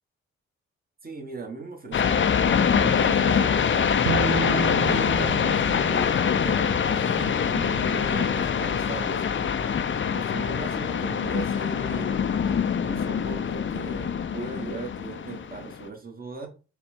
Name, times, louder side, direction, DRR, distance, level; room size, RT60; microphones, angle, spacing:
voice 1, 1.0-4.0 4.8-12.3 12.8-16.5, right 4 dB, 30° right, 3 dB, 1.4 m, -38 dB
sound 1, 1.9-15.8, left 7 dB, 40° left, 0.5 m, -24 dB
Bowed string instrument, 4.1-7.3, right 10 dB, 60° right, 0.5 m, -32 dB
4.2 x 2.3 x 4.3 m, 0.34 s
supercardioid pair, 50°, 30 cm